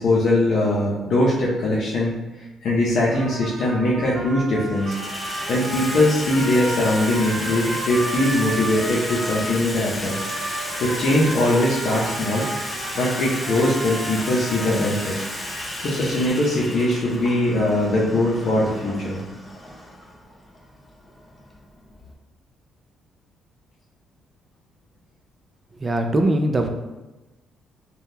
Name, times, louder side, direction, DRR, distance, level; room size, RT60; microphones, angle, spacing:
voice 1, 0.0-2.1 2.6-5.0 5.5-10.1 10.8-12.4 12.9-15.2 15.8-19.2, left 1 dB, 65° left, -6 dB, 0.6 m, -21 dB
Water tap faucet / Sink (filling or washing), 2.8-2.9 3.8-4.2 4.5-22.1, left 1 dB, 15° left, 0.6 m, -33 dB
Trumpet, 3.1-9.6 10.1-15.4, right 2 dB, 65° right, 0.7 m, -33 dB
voice 2, 25.8-26.7, right 1 dB, 30° right, 5 dB, 0.4 m, -21 dB
3.5 x 2.3 x 2.7 m, 1.1 s
cardioid pair, 90°, 0 cm